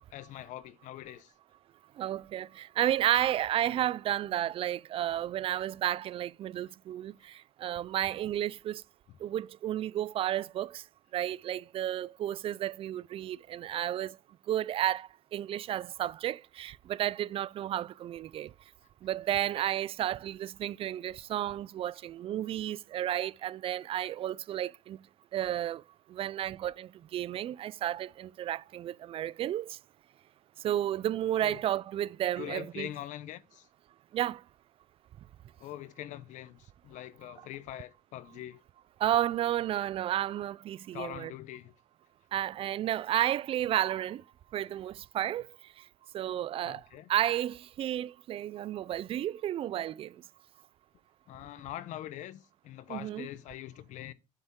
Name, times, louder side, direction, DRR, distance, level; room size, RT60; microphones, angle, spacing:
voice 1, 0.0-1.3 9.1-9.2 31.4-31.6 32.4-33.7 35.6-38.6 40.9-41.7 46.6-47.1 51.3-54.1, left 13 dB, 65° left, 0.7 m, -43 dB
voice 2, 2.0-7.1 7.6-8.8 9.2-10.8 11.1-14.1 14.5-18.5 19.0-25.0 25.3-25.8 26.1-29.8 30.6-32.9 34.1-34.4 39.0-41.3 42.3-44.2 44.5-45.5 46.1-46.8 47.1-50.1 52.9-53.3, right 12 dB, 45° right, 0.4 m, -32 dB
7.9 x 7.0 x 3.7 m
cardioid pair, 115°, 14 cm